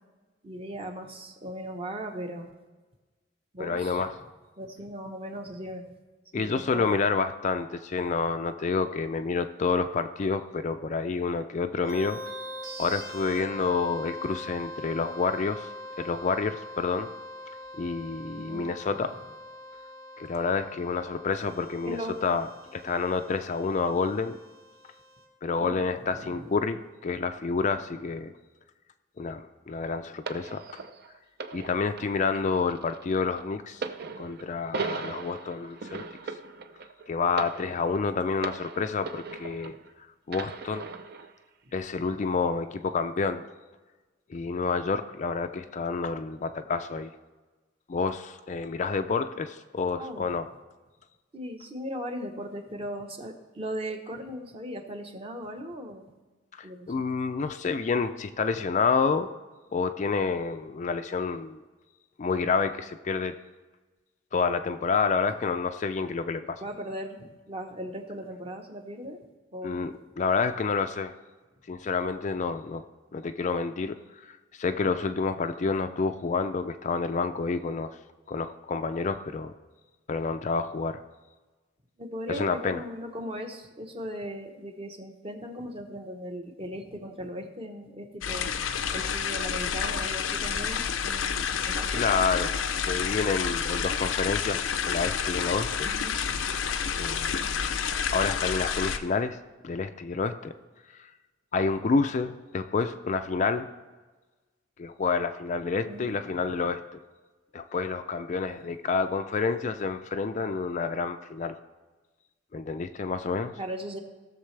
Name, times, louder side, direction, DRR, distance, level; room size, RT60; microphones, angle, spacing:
voice 1, 0.4-2.5 3.5-4.0 4.6-5.9 6.3-6.9 13.6-13.7 18.4-18.7 19.1-19.2 21.8-22.2 25.6-26.5 27.9-28.0 35.6-35.7 39.6-39.8 41.6-41.7 49.1-49.2 50.0-50.2 51.3-56.1 56.6-57.0 66.6-69.2 69.5-69.9 82.0-88.5 88.9-92.0 95.9-96.6 105.8-106.4 113.6-114.0, equal, 30° right, 4 dB, 1.0 m, -38 dB
voice 2, 3.6-4.1 6.3-12.2 12.8-15.7 16.0-17.1 17.8-19.1 20.2-24.4 25.4-28.3 29.2-30.8 31.5-33.8 34.2-36.0 37.1-39.7 40.3-40.9 41.7-43.4 44.3-47.1 47.9-50.5 56.6-59.3 59.7-61.6 62.2-63.3 64.3-66.6 69.6-71.1 71.7-72.8 73.1-73.9 74.2-78.0 78.3-79.5 80.1-81.0 82.3-82.8 91.9-92.5 92.8-95.9 97.0-97.8 98.1-99.4 99.6-100.5 101.5-103.7 104.8-107.0 107.5-111.6 112.5-113.5, left 4 dB, 35° left, 8 dB, 0.4 m, -29 dB
sound 1, 11.8-25.2, left 1 dB, 70° right, 2.8 m, -43 dB
sound 2, 30.3-39.9 40.3-41.3 42.1-42.3, right 4 dB, 50° right, 0.5 m, -39 dB
sound 3, 88.2-99.0, left 7 dB, 90° left, 0.6 m, -29 dB
17.0 x 6.6 x 3.3 m, 1.3 s
head